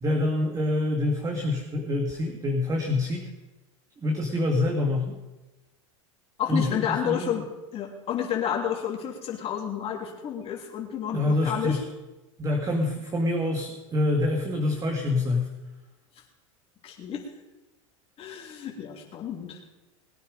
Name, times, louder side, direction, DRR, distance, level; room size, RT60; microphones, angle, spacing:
voice 1, 0.0-3.3 4.0-5.2 6.5-7.4 11.1-11.8 12.4-15.5, left 2 dB, 20° right, 2 dB, 2.1 m, -26 dB
voice 2, 6.4-7.4 7.7-11.8 16.1-16.2 16.8-17.2 18.2-19.7, left 9 dB, 35° left, -1 dB, 3.1 m, -30 dB
21.0 x 9.4 x 5.1 m, 1.1 s
supercardioid pair, 115°, 17 cm